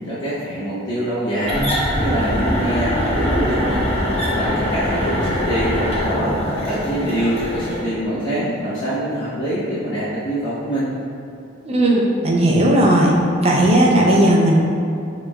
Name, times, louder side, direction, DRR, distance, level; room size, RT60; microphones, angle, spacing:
voice 1, 0.1-3.8 4.3-10.9, equal, 70° left, -12 dB, 1.1 m, -24 dB
sound 1, 1.4-7.8, equal, 30° left, 0.8 m, -22 dB
voice 2, 11.7-13.2 13.4-14.5, right 1 dB, 30° right, -3 dB, 0.6 m, -15 dB
6.7 x 3.2 x 2.4 m, 2.5 s
head